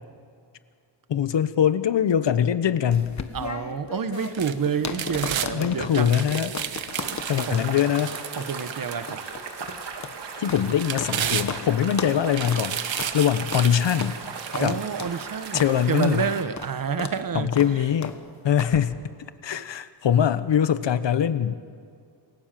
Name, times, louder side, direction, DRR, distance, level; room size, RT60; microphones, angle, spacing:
voice 1, 1.1-3.2 5.0-5.1 5.5-6.6 7.3-8.1 10.4-14.2 14.6-14.8 15.5-16.2 17.3-18.1 18.4-19.0 19.4-21.5, left 9 dB, 70° left, 13 dB, 1.1 m, -23 dB
sound 1, 2.9-11.2 11.5-11.6 11.9-12.2 12.4-12.6 13.0-13.2 13.5-13.7 14.0-14.2 14.5-14.7 15.0-15.2 15.5-15.7 16.0-16.2 16.6-16.7 17.0-17.2 17.5-17.7 18.0-18.2 18.6-18.8, left 5 dB, 40° left, 1.4 m, -35 dB
voice 2, 3.3-6.2 6.7-7.6 8.4-9.3 14.5-17.5 19.5-19.6, right 7 dB, 50° right, 11 dB, 1.1 m, -29 dB
sound 2, 4.1-5.5 5.9-9.3 9.8-9.9 10.5-11.9 12.3-14.9 15.4-15.5, right 9 dB, 85° right, 1.3 m, -32 dB
sound 3, 6.9-16.4, right 5 dB, 65° right, 2.7 m, -37 dB
28.5 x 21.5 x 7.6 m, 2.2 s
wide cardioid pair, 170°, 44 cm